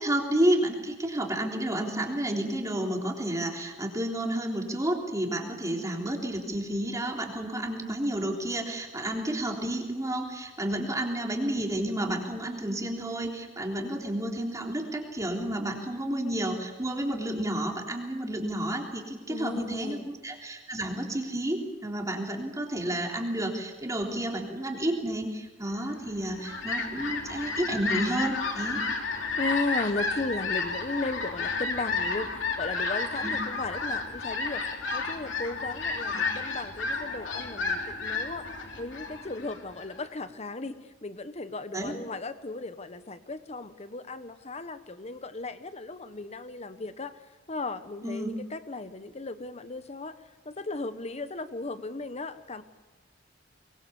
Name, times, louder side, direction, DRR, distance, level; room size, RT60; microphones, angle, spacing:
voice 1, 0.0-28.8 33.2-33.4 36.1-36.2 41.7-41.9 48.0-48.3, right 1 dB, 15° right, 1 dB, 3.5 m, -31 dB
voice 2, 19.3-20.1 29.4-34.6 34.9-38.4 38.8-47.1 47.5-50.2 50.4-52.6, left 3 dB, 35° left, 11 dB, 1.1 m, -36 dB
Fowl, 26.1-40.0, left 4 dB, 75° left, 3.4 m, -32 dB
23.5 x 23.0 x 7.1 m, 1.2 s
head